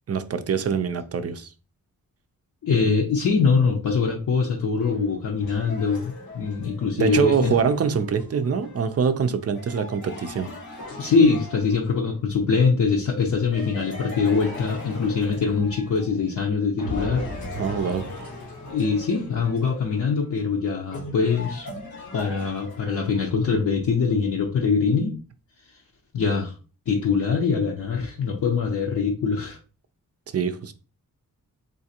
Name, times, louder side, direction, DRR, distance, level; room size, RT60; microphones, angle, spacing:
voice 1, 0.1-1.5 7.0-10.5 17.6-18.1 30.3-30.7, right 6 dB, 45° right, 0.5 m, -24 dB
voice 2, 2.6-7.6 11.0-17.3 18.7-21.7 22.1-25.2 26.1-26.5 26.9-29.6, left 5 dB, 60° left, 0.7 m, -23 dB
sound 1, 4.8-12.2 13.5-16.4 16.8-23.3, left 2 dB, 90° left, 1.0 m, -38 dB
3.8 x 2.5 x 2.8 m
cardioid pair, 60°, 35 cm